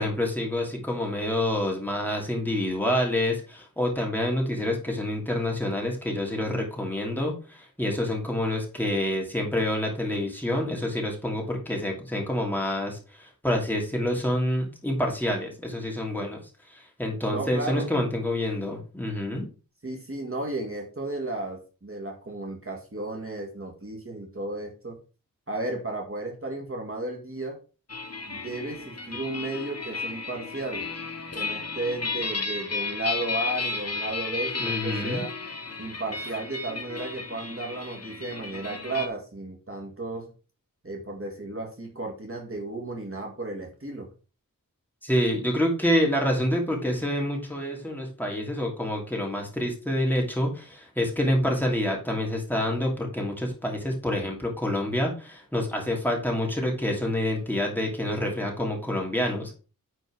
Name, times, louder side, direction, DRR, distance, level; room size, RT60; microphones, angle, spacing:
voice 1, 0.0-16.4 16.7-19.4 34.6-35.2 45.0-59.5, left 1 dB, 5° left, -1 dB, 2.8 m, -27 dB
voice 2, 17.3-17.9 19.8-25.0 25.5-27.6 28.3-30.9 31.3-35.3 35.8-40.3 40.8-44.1, right 2 dB, 40° right, 0 dB, 2.0 m, -34 dB
sound 1, 27.9-39.1, left 4 dB, 45° left, 1.3 m, -33 dB
9.6 x 4.4 x 4.7 m, 0.35 s
wide cardioid pair, 70°, 34 cm